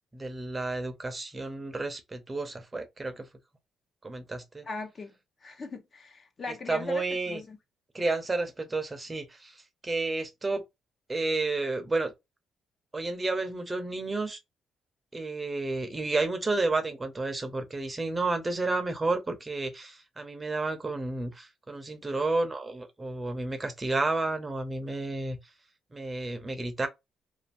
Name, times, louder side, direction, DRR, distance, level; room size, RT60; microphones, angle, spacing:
voice 1, 0.1-3.3 4.0-4.6 6.7-7.4 7.9-10.6 11.1-12.1 12.9-14.4 15.1-25.4 25.9-26.9, right 3 dB, 25° right, 0.7 m, -31 dB
voice 2, 4.6-5.1 5.4-7.6, left 3 dB, 40° left, 0.9 m, -39 dB
2.6 x 2.6 x 2.4 m
cardioid pair, 90°, 0 cm